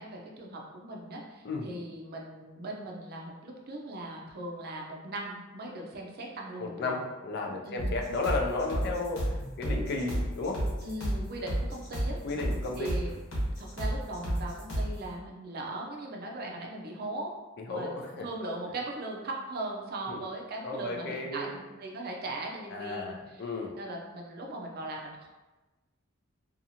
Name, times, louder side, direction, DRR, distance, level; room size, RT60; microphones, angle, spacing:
voice 1, 0.0-7.0 7.6-7.9 10.8-12.2 12.7-13.1 13.6-17.3 17.7-23.4 23.7-25.3, right 2 dB, 50° right, 0 dB, 0.5 m, -39 dB
voice 2, 6.6-10.6 12.2-12.9 17.7-18.3 20.1-20.2 20.6-21.6 22.7-23.7, left 3 dB, 55° left, 1 dB, 0.4 m, -33 dB
sound 1, 7.8-15.0, equal, 70° left, 1.0 m, -32 dB
2.6 x 2.4 x 2.7 m, 1.1 s
head